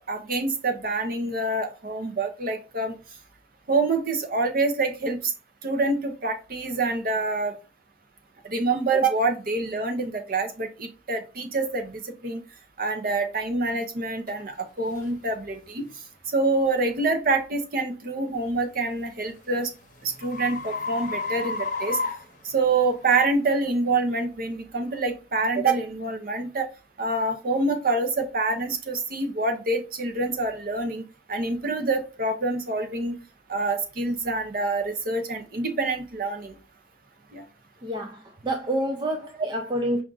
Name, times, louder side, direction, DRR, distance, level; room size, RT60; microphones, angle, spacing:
voice 1, 0.1-2.9 3.7-5.3 5.6-7.5 8.4-12.4 12.8-15.8 16.3-19.7 20.0-22.0 22.4-26.7 27.0-31.0 31.3-33.2 33.5-36.5 37.3-37.4, right 3 dB, 45° right, 0.7 m, -26 dB
sound 1, 14.3-14.4 14.9-15.1 15.7-16.0 18.6-23.1, left 4 dB, 40° left, 0.8 m, -33 dB
voice 2, 37.8-40.0, right 1 dB, 25° right, 0.4 m, -28 dB
5.1 x 2.4 x 3.8 m
head